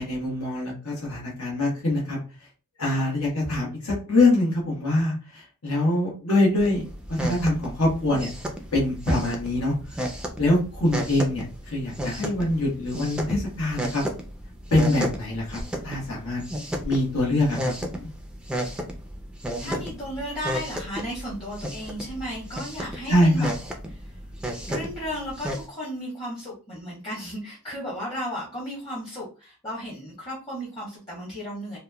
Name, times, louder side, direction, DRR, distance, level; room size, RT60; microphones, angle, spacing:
voice 1, 0.0-2.2 2.8-8.3 8.7-10.0 10.4-14.0 14.7-16.4 16.8-18.1 19.6-19.8 23.1-23.5, left 1 dB, 80° left, -4 dB, 1.0 m, -24 dB
sound 1, 6.6-25.6, equal, 5° right, 0.3 m, -34 dB
voice 2, 19.6-23.5 23.9-24.2 24.7-31.8, equal, 25° left, -6 dB, 0.9 m, -34 dB
2.9 x 2.1 x 2.2 m, 0.34 s
head